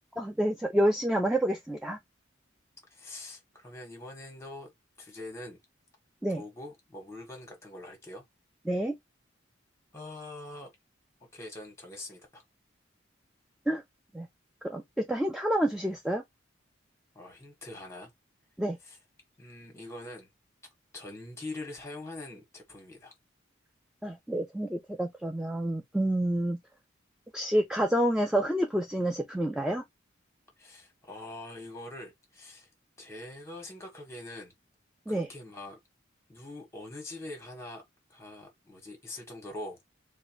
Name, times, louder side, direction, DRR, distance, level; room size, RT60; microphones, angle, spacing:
voice 1, 0.2-2.0 6.2-6.4 8.7-9.0 13.7-13.8 14.1-14.3 14.6-16.2 18.6-18.8 24.0-26.6 27.3-29.8 35.1-35.3, right 1 dB, 5° right, 0.4 m, -28 dB
voice 2, 2.9-4.7 5.0-5.6 6.4-8.2 9.9-10.7 11.3-12.4 17.1-18.1 18.8-19.0 19.4-20.3 20.9-23.1 30.6-32.7 33.0-34.5 35.1-35.8 36.3-37.8 38.1-39.8, left 2 dB, 15° left, 1.4 m, -43 dB
4.3 x 2.2 x 2.9 m
head